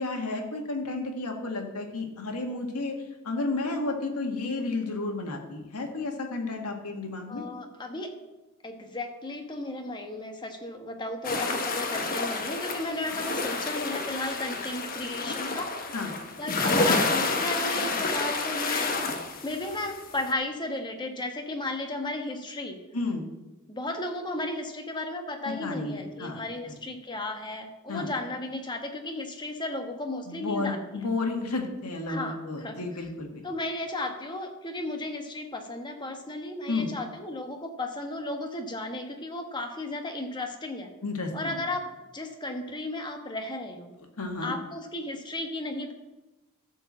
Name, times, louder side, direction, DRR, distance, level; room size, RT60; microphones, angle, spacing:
voice 1, 0.0-2.9 3.2-7.4 15.9-16.1 22.9-23.2 25.4-26.4 26.7-26.8 27.9-28.1 30.3-33.4 36.7-36.9 41.0-41.3 44.2-44.5, left 3 dB, 85° left, 2 dB, 1.7 m, -32 dB
voice 2, 7.3-8.1 8.6-15.9 16.4-19.1 19.4-22.8 23.7-30.8 32.1-32.8 33.4-40.9 41.3-41.9 42.1-43.9 44.4-45.9, left 2 dB, 20° left, 4 dB, 1.3 m, -34 dB
sound 1, 11.2-20.3, left 3 dB, 40° left, 1.0 m, -29 dB
13.0 x 4.6 x 7.3 m, 1.0 s
head